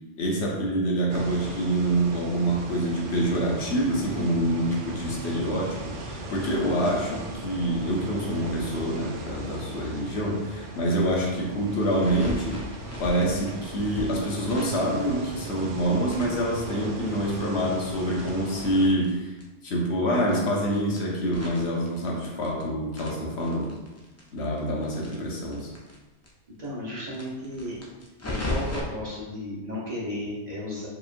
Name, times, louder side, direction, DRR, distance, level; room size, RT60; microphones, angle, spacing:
voice 1, 0.2-12.6 13.0-19.3 19.6-23.7 24.3-25.7, right 1 dB, 65° left, -2 dB, 1.0 m, -26 dB
sound 1, 1.1-18.9, right 2 dB, 55° right, 0.6 m, -38 dB
sound 2, 11.9-15.8 16.1-19.1 19.4-19.5 19.7-19.8 20.2-22.6 22.9-25.9 26.2-26.3 26.6-26.7 27.1-28.8, left 2 dB, 25° left, 0.3 m, -37 dB
voice 2, 26.6-27.8 28.3-30.9, left 1 dB, 35° right, -7 dB, 1.1 m, -34 dB
4.9 x 3.1 x 2.5 m, 1.1 s
omnidirectional pair, 1.2 m